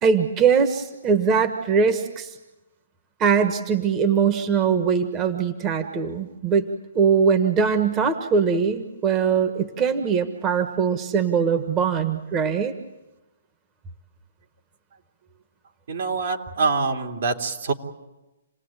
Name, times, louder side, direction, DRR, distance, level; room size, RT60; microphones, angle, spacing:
voice 1, 0.0-2.4 3.2-6.7 6.9-12.7, right 6 dB, 20° right, 7 dB, 1.5 m, -21 dB
voice 2, 15.9-17.7, right 4 dB, 65° right, 2 dB, 3.2 m, -25 dB
29.0 x 18.5 x 9.0 m, 1.0 s
hypercardioid pair, 155°, 0 cm